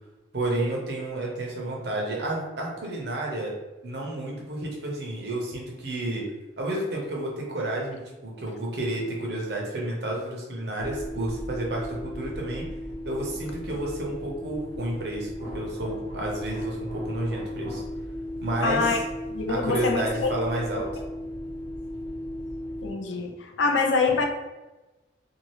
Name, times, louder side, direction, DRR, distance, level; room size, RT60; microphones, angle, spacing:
voice 1, 0.3-3.5 3.8-6.2 6.6-12.7 13.0-15.3 15.5-17.8 18.4-19.0 19.5-21.0, right 1 dB, 65° right, -2 dB, 0.8 m, -31 dB
sound 1, 10.8-22.9, equal, 30° left, 1.1 m, -36 dB
voice 2, 18.6-19.0 19.3-20.3 22.8-23.3 23.6-24.3, left 4 dB, 90° left, 3 dB, 0.5 m, -24 dB
2.7 x 2.4 x 3.1 m, 1.1 s
head